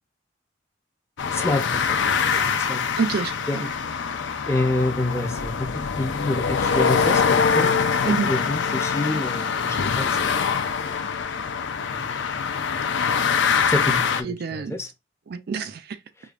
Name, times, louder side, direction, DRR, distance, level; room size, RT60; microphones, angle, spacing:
sound 1, 1.2-14.2, left 6 dB, 65° left, 0.5 m, -24 dB
voice 1, 1.3-1.9 2.2-2.8 3.5-3.6 4.5-7.7 8.1-10.3 10.9-11.1 11.9-12.3 13.6-14.9, left 2 dB, 15° left, 0.5 m, -28 dB
voice 2, 2.9-3.7 8.0-8.3 14.2-14.8 15.3-16.0, right 5 dB, 50° right, 0.4 m, -27 dB
4.9 x 2.2 x 2.4 m
head